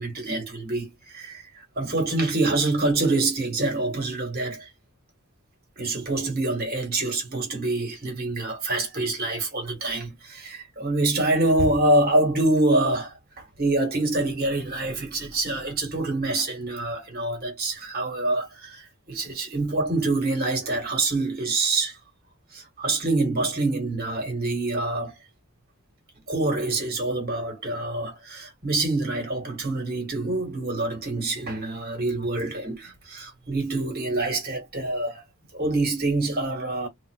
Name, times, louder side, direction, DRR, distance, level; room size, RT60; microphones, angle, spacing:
voice 1, 0.0-4.7 5.8-22.0 22.5-25.1 26.3-35.2 35.5-36.9, right 2 dB, 45° right, 1.8 m, -26 dB
3.8 x 2.9 x 2.3 m
head